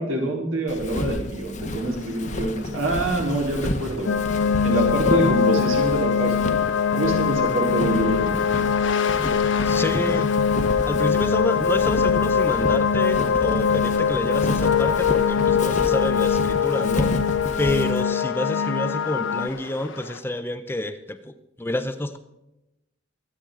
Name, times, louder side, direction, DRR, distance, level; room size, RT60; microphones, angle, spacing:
voice 1, 0.0-4.1 4.6-6.6 6.9-8.4 9.7-10.1, right 2 dB, 80° right, -1 dB, 3.8 m, -26 dB
Walk footsteps, 0.7-18.0, left 1 dB, 35° left, 0.9 m, -31 dB
sound 1, 1.8-20.2, left 4 dB, 70° left, 1.0 m, -38 dB
sound 2, 4.1-19.5, left 7 dB, 85° left, 0.5 m, -22 dB
voice 2, 9.6-10.3 10.9-17.1 17.6-22.2, left 1 dB, 10° left, 10 dB, 0.6 m, -29 dB
23.5 x 8.7 x 3.8 m, 0.90 s
head